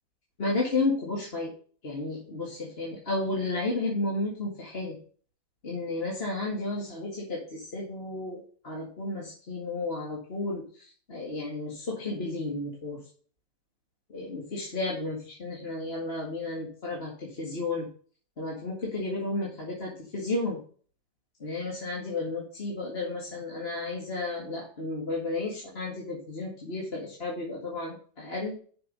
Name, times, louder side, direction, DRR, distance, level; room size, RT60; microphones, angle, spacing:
voice 1, 0.4-1.5 1.8-5.0 5.6-13.0 14.1-17.9 18.4-20.6 21.4-28.6, left 2 dB, 35° left, -3 dB, 2.1 m, -32 dB
7.0 x 6.1 x 5.3 m, 0.43 s
omnidirectional pair, 1.8 m